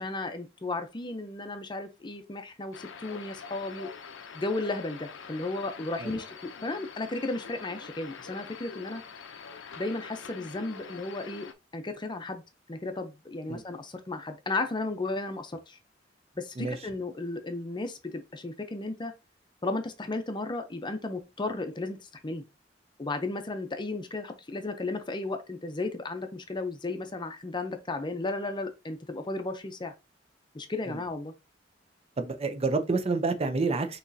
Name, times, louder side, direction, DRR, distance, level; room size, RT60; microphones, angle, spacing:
voice 1, 0.0-3.9 4.3-9.0 9.8-11.5 11.7-12.4 12.7-15.8 16.4-19.1 19.6-22.4 23.0-29.9 30.5-31.3, left 2 dB, 25° left, 0.6 m, -34 dB
sound 1, 2.7-11.5, left 6 dB, 80° left, 0.6 m, -45 dB
voice 2, 32.2-34.0, right 3 dB, 35° right, 0.6 m, -28 dB
6.1 x 3.0 x 2.7 m
head